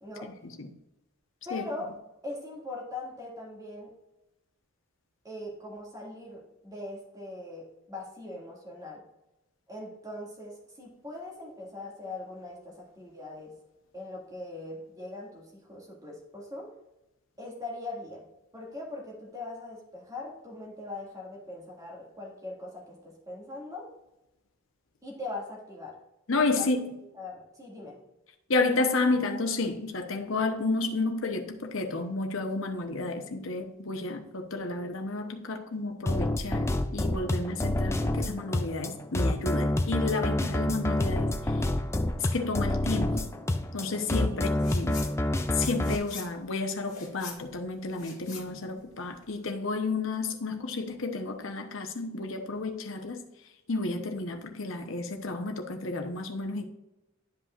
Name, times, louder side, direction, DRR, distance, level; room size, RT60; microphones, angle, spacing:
voice 1, 1.5-1.9 2.2-3.9 5.2-9.0 9.7-13.5 13.9-16.7 17.4-18.3 18.5-23.9 25.0-26.0 26.5-26.7 27.1-28.0 44.3-44.6, left 2 dB, 15° right, -4 dB, 2.1 m, -41 dB
voice 2, 26.3-26.9 28.5-41.6 42.2-43.3 43.7-45.0 45.5-53.3 53.7-56.6, left 3 dB, 70° left, 4 dB, 0.9 m, -31 dB
sound 1, 36.1-45.9, left 1 dB, 15° left, 0.4 m, -28 dB
sound 2, 44.5-45.1 45.4-49.4, left 6 dB, 35° left, 2.1 m, -45 dB
11.5 x 5.4 x 2.5 m, 0.92 s
head